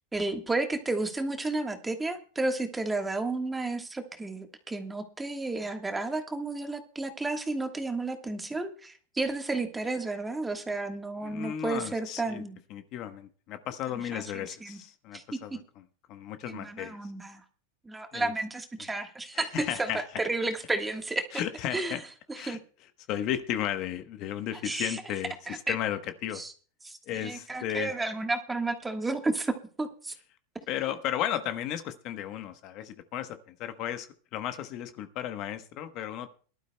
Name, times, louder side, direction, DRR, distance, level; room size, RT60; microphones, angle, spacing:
voice 1, 0.1-12.6 14.1-14.8 15.1-15.2 15.5-15.6 16.5-17.4 17.8-21.3 21.7-22.0 22.3-22.6 24.6-25.0 25.5-25.7 26.3-26.5 26.8-30.1, right 2 dB, 10° right, 6 dB, 1.4 m, -32 dB
voice 2, 11.2-12.4 12.7-15.6 16.1-17.0 18.1-18.3 19.3-20.0 21.3-22.0 22.3-22.6 23.1-26.4 27.1-27.9 30.7-34.1 34.3-36.3, left 11 dB, 45° left, 9 dB, 1.0 m, -34 dB
22.5 x 12.0 x 2.2 m, 0.41 s
supercardioid pair, 130°, 0 cm